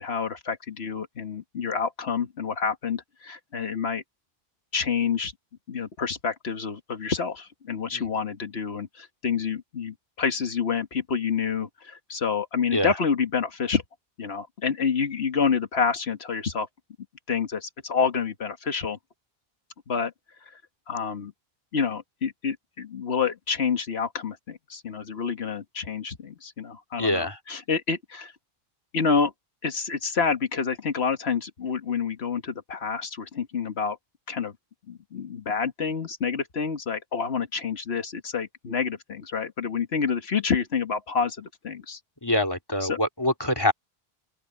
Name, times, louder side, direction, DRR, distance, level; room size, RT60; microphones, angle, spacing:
voice 1, 0.0-4.0 4.7-5.3 5.7-13.8 14.2-16.7 17.3-19.0 19.9-20.1 20.5-20.6 20.9-21.3 21.7-28.3 28.9-29.3 29.6-34.0 34.3-34.5 34.9-42.0 42.8-43.0, left 6 dB, 85° left, 1.7 m, -28 dB
voice 2, 27.0-27.4 42.2-43.7, left 1 dB, 25° left, 3.1 m, -25 dB
open air
omnidirectional pair, 1.0 m